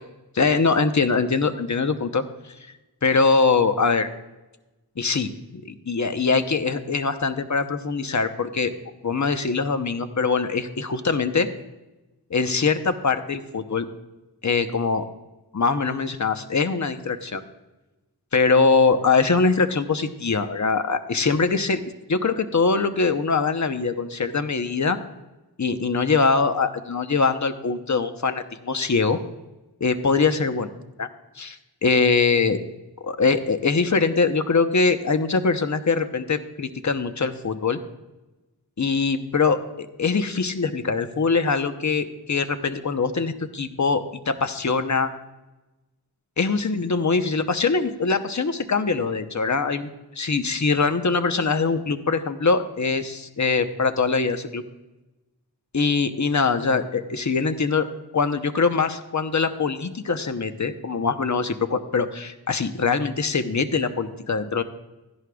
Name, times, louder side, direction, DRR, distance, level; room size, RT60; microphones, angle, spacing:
voice 1, 0.3-2.5 3.0-4.1 5.0-8.7 9.0-11.5 12.3-13.9 14.4-15.0 15.5-17.4 18.3-21.8 22.1-25.0 25.6-29.2 29.8-30.7 31.0-31.1 31.4-32.6 33.0-37.8 38.8-45.1 46.4-54.6 55.7-57.9 58.1-64.6, left 4 dB, 45° left, 9 dB, 0.9 m, -23 dB
15.0 x 11.0 x 2.3 m, 1.1 s
wide cardioid pair, 45°, 41 cm